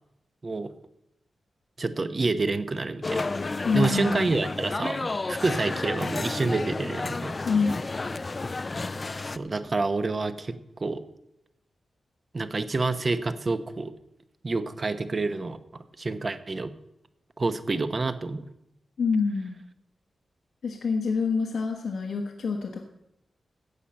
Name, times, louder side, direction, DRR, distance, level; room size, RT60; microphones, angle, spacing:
voice 1, 1.8-3.3 3.7-7.3 9.2-11.0 12.3-13.9 14.4-15.6 16.0-16.7 17.4-18.4, right 3 dB, 40° right, 11 dB, 0.9 m, -28 dB
sound 1, 3.0-9.4, left 3 dB, 35° left, 0.5 m, -31 dB
voice 2, 3.6-4.3 7.4-7.8 19.0-19.6 20.6-22.9, left 4 dB, 85° left, 2 dB, 1.3 m, -26 dB
15.0 x 5.7 x 8.8 m, 0.83 s
wide cardioid pair, 100°, 0 cm